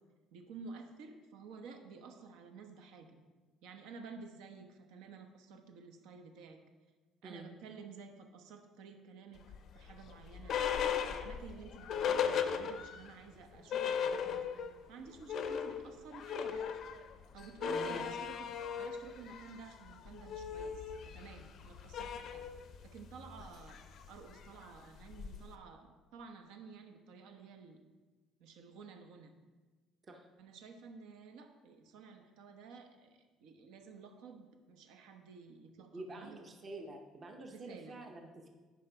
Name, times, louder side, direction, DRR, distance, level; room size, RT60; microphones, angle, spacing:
voice 1, 0.3-3.2 3.6-6.6 7.2-9.4 9.7-10.6 11.1-14.5 14.9-16.7 17.3-18.5 18.8-22.5 22.8-23.8 24.1-27.8 28.4-29.3 30.4-36.4 37.5-38.0, right 5 dB, 75° right, 5 dB, 0.9 m, -52 dB
sound 1, 9.5-13.1 13.4-13.5 13.7-14.8 15.1-25.6, left 7 dB, 40° left, 0.5 m, -38 dB
voice 2, 17.7-18.1 30.0-30.3 35.9-38.5, right 2 dB, 20° right, 3 dB, 0.7 m, -47 dB
10.5 x 5.1 x 4.4 m, 1.3 s
cardioid pair, 180°, 0 cm